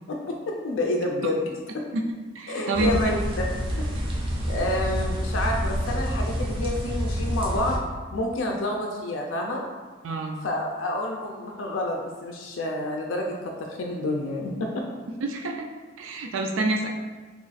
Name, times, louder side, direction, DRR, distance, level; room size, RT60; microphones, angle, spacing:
voice 1, 0.3-1.4 1.7-1.8 2.5-3.5 3.8-3.9 4.4-7.8 8.1-9.6 10.4-14.8, left 1 dB, 80° left, 0 dB, 0.4 m, -29 dB
voice 2, 2.3-3.0 10.0-10.4 15.2-15.7 16.0-16.9, right 2 dB, 80° right, 2 dB, 0.4 m, -27 dB
sound 1, 2.7-7.8, equal, 25° right, 0.5 m, -28 dB
3.0 x 2.4 x 4.0 m, 1.4 s
head